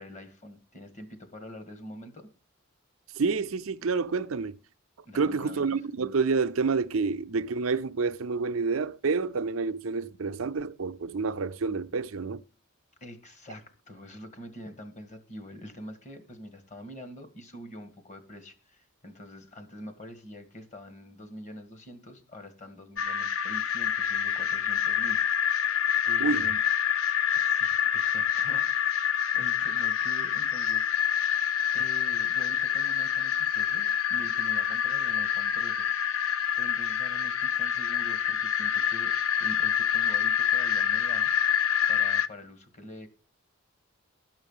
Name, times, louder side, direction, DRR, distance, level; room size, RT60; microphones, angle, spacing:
voice 1, 0.0-2.3 5.1-5.8 7.0-7.1 13.0-25.8 26.1-26.6 27.3-31.3 31.7-35.9 36.6-39.1 39.4-41.3 41.9-43.1, equal, 35° left, 1.8 m, -45 dB
voice 2, 3.2-4.6 5.1-12.4 26.2-26.5, right 4 dB, 80° right, 0.6 m, -28 dB
sound 1, 23.0-42.3, left 9 dB, 80° left, 0.7 m, -27 dB
12.5 x 5.7 x 7.1 m
head